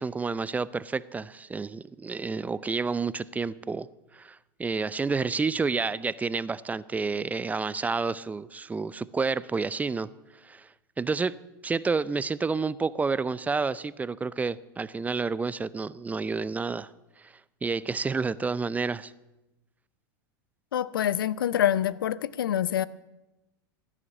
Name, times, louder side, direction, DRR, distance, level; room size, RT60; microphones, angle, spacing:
voice 1, 0.0-3.9 4.1-10.1 10.4-10.7 11.0-11.3 11.6-16.9 17.6-19.1, right 4 dB, 15° right, 18 dB, 0.5 m, -29 dB
voice 2, 20.7-22.9, left 10 dB, 80° left, 20 dB, 0.6 m, -26 dB
15.5 x 9.8 x 7.2 m, 0.99 s
hypercardioid pair, 100°, 11 cm